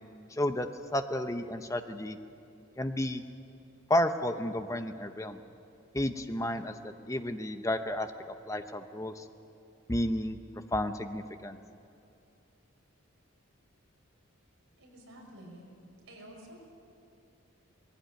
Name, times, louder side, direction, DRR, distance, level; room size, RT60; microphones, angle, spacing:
voice 1, 0.3-2.2 2.8-3.2 3.9-5.4 5.9-8.1 8.5-9.3 9.9-10.4 10.7-11.6, left 1 dB, 15° left, 8 dB, 0.7 m, -32 dB
voice 2, 14.8-15.6 16.1-16.5, right 1 dB, 70° right, -1 dB, 5.5 m, -50 dB
20.0 x 16.0 x 9.1 m, 2.6 s
head